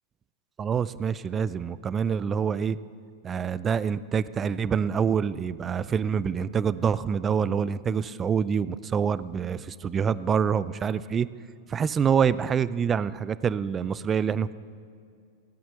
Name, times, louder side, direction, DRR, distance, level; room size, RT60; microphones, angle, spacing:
voice 1, 0.6-2.8 3.2-11.3 11.7-14.5, right 7 dB, 25° right, 17 dB, 0.4 m, -26 dB
17.0 x 8.7 x 6.8 m, 2.4 s
hypercardioid pair, 100°, 0 cm